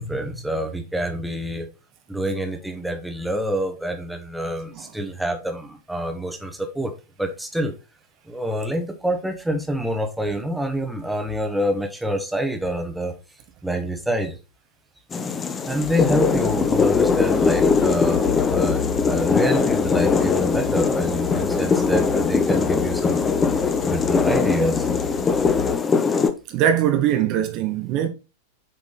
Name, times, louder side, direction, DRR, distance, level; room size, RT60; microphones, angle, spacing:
voice 1, 0.0-1.7 2.1-6.9 7.2-7.7 8.3-13.1 13.6-14.4 15.6-23.3 23.8-24.8, equal, 5° right, 1.1 m, -26 dB
sound 1, 15.1-26.3, left 5 dB, 20° left, 0.7 m, -21 dB
sound 2, 15.8-25.8, left 9 dB, 60° left, 0.7 m, -33 dB
voice 2, 26.5-28.1, right 10 dB, 40° right, 0.7 m, -21 dB
7.4 x 3.8 x 4.0 m
figure-of-eight pair, 90°, 0 cm